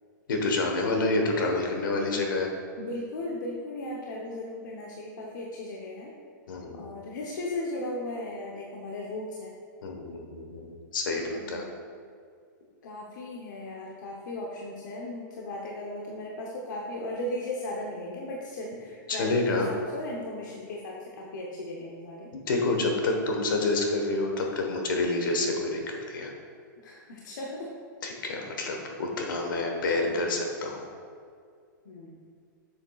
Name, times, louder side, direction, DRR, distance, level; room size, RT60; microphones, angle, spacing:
voice 1, 0.3-2.5 6.5-6.8 9.8-11.6 19.1-19.7 22.3-26.3 28.0-30.9, left 2 dB, 85° left, 2 dB, 1.3 m, -28 dB
voice 2, 2.8-6.1 6.7-9.6 11.3-11.7 12.8-22.3 26.8-27.7 31.8-32.1, left 1 dB, 70° left, -2 dB, 0.9 m, -36 dB
7.0 x 7.0 x 2.4 m, 2.2 s
supercardioid pair, 160°, 11 cm